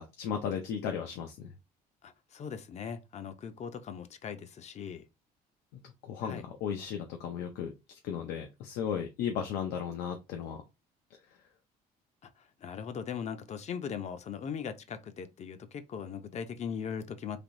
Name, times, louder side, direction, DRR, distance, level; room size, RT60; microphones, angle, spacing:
voice 1, 0.0-1.5 5.8-10.6, left 8 dB, 90° left, 0.5 m, -35 dB
voice 2, 2.0-5.0 6.2-6.4 12.2-17.4, left 7 dB, 40° left, 0.5 m, -39 dB
3.4 x 2.7 x 2.5 m
cardioid pair, 110°, 17 cm